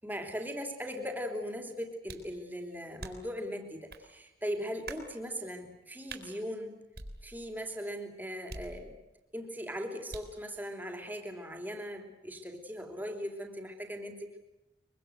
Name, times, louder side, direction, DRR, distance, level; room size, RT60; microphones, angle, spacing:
voice 1, 0.0-6.8 7.2-9.0 9.3-14.4, equal, 10° right, 4 dB, 3.3 m, -39 dB
sound 1, 2.1-2.4 3.0-3.4 3.9-4.1 4.9-5.1 6.1-6.3 6.9-7.6 8.5-9.2 10.1-10.4, right 3 dB, 60° right, 4.3 m, -45 dB
24.5 x 24.0 x 8.0 m, 0.98 s
head